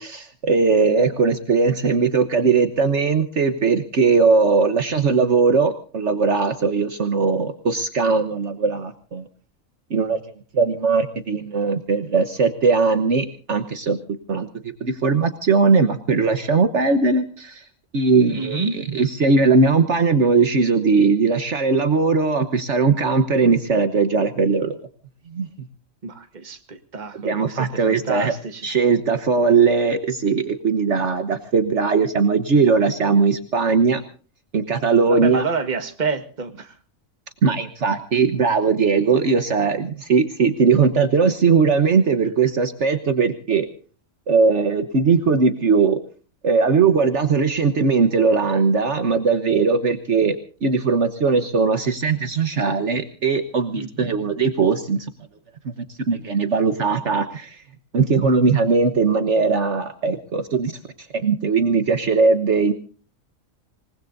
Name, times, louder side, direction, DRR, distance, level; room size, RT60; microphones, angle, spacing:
voice 1, 0.0-9.2 9.9-10.2 10.5-14.0 14.3-17.6 17.9-24.8 25.3-25.5 27.2-28.3 28.6-34.0 34.5-35.4 37.4-43.7 44.3-46.0 46.4-55.1 55.6-55.7 56.1-57.6 57.9-60.7 61.1-62.7, right 4 dB, 60° right, 9 dB, 1.4 m, -19 dB
voice 2, 18.3-18.7 26.0-28.7 35.1-36.7 53.7-54.1, right 4 dB, 35° right, 8 dB, 1.6 m, -29 dB
27.0 x 19.5 x 2.6 m, 0.40 s
omnidirectional pair, 1.4 m